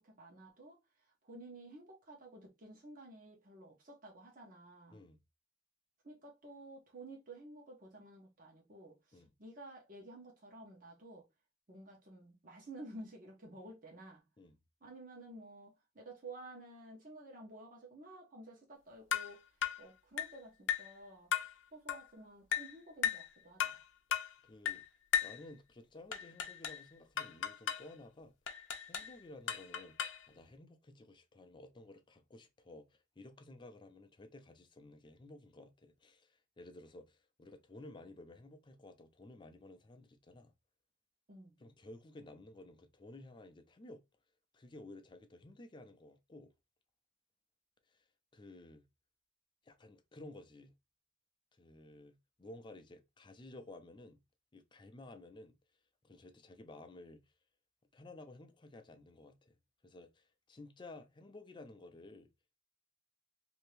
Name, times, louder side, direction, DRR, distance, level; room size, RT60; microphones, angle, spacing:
voice 1, 0.0-5.0 6.0-11.3 11.7-14.2 14.8-21.3 21.7-23.8 41.3-41.6, right 1 dB, 45° right, 1.0 m, -52 dB
sound 1, 19.1-19.3 19.6-19.8 20.2-20.4 20.7-20.9 21.3-21.5 21.9-22.1 22.5-22.7 23.0-23.3 23.6-23.8 24.1-24.3 24.7-24.8 25.1-25.4 26.1-26.8 27.2-27.9 28.5-29.1 29.5-30.3, left 8 dB, 90° left, 0.5 m, -36 dB
voice 2, 24.1-24.8 25.2-28.3 28.9-40.5 41.6-44.0 44.5-46.5 47.9-48.0 48.3-48.9 49.6-50.7 51.6-54.2 54.5-55.5 56.0-57.2 57.9-59.6 59.8-62.3, left 2 dB, 25° left, 0.4 m, -54 dB
2.8 x 2.7 x 3.2 m
head